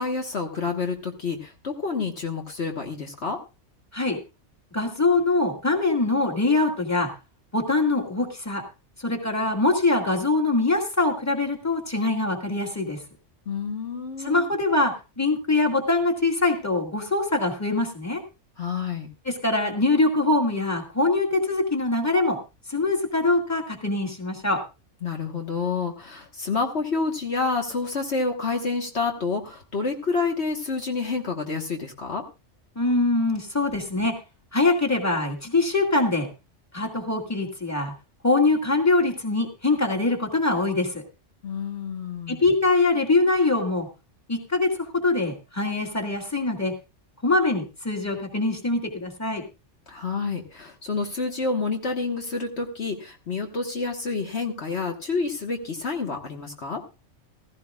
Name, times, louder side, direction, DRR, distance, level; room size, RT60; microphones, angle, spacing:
voice 1, 0.0-3.4 13.5-14.5 18.6-19.1 25.0-32.2 41.4-42.4 49.9-56.8, left 4 dB, 65° left, 2 dB, 1.7 m, -28 dB
voice 2, 4.7-7.1 7.5-8.6 9.0-13.0 14.2-18.2 19.3-22.4 22.7-24.6 32.8-34.2 34.5-36.3 36.7-37.9 38.2-41.0 42.3-43.9 44.3-46.7 47.2-49.4, left 2 dB, 15° left, 1 dB, 2.1 m, -23 dB
16.0 x 15.0 x 2.4 m, 0.29 s
omnidirectional pair, 1.2 m